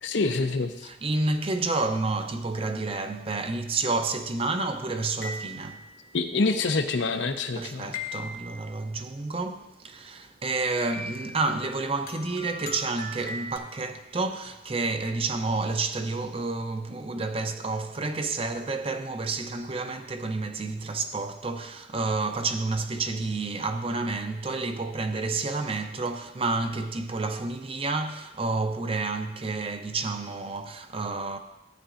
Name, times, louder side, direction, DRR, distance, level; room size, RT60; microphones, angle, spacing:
voice 1, 0.0-0.9 6.1-7.9, left 3 dB, 75° left, 0.7 m, -26 dB
voice 2, 0.8-5.8 7.6-31.4, right 3 dB, 30° right, 0.6 m, -30 dB
sound 1, 5.2-6.0 7.9-8.7 10.9-11.5 12.1-13.6, left 2 dB, 50° left, 1.0 m, -38 dB
14.0 x 9.1 x 2.5 m
head